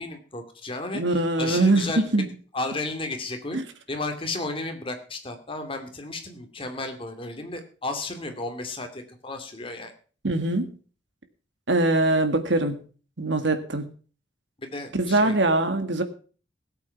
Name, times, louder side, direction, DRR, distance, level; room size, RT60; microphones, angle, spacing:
voice 1, 0.0-2.3 2.5-3.6 3.9-9.9 14.6-15.4, left 2 dB, 30° left, 5 dB, 2.5 m, -33 dB
voice 2, 0.9-2.3 3.5-3.6 10.2-10.7 11.7-12.8 13.2-13.8 15.0-16.0, right 2 dB, 90° right, 8 dB, 1.9 m, -22 dB
17.5 x 8.3 x 5.9 m, 0.40 s
head